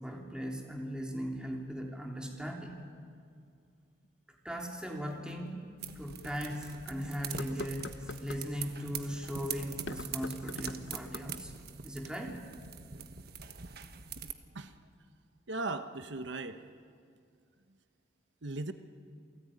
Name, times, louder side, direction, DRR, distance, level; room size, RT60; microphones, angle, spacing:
voice 1, 0.0-2.8 4.4-5.7 5.9-12.4, equal, 5° right, 0 dB, 3.1 m, -38 dB
sound 1, 4.0-4.1 5.3-5.4 6.0-6.1 7.2-8.5 9.7-11.4, left 3 dB, 70° left, 0.8 m, -44 dB
sound 2, 5.8-14.3, right 7 dB, 55° right, 1.4 m, -43 dB
voice 2, 15.5-16.6 18.4-18.7, right 2 dB, 75° right, 9 dB, 1.1 m, -37 dB
28.0 x 18.0 x 9.9 m, 2.3 s
head